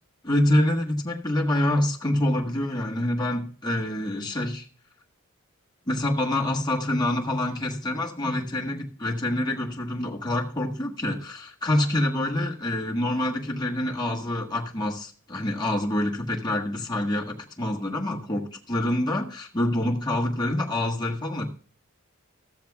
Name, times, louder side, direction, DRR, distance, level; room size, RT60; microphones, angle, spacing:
voice 1, 0.3-4.7 5.9-21.5, left 1 dB, 20° left, -1 dB, 1.3 m, -26 dB
14.0 x 13.5 x 2.3 m, 0.43 s
head